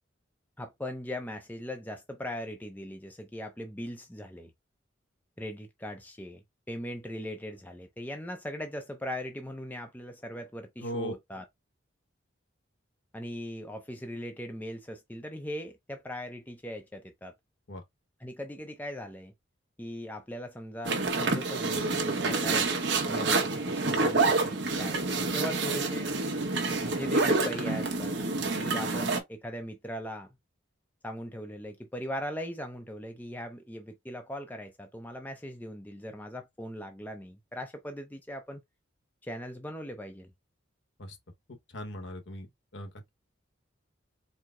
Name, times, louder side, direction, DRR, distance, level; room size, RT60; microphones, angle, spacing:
voice 1, 0.6-4.5 5.4-6.4 6.7-11.5 13.1-17.3 18.2-19.3 19.8-22.7 23.0-26.1 26.8-28.1 28.6-30.3 31.0-38.6 39.2-40.3, equal, 10° left, 0.5 m, -39 dB
voice 2, 10.8-11.1 17.7-17.8 41.0-41.2 41.5-42.5 42.7-43.1, equal, 70° left, 1.1 m, -38 dB
sound 1, 20.8-29.2, right 3 dB, 60° right, 1.0 m, -28 dB
4.6 x 2.1 x 3.6 m
head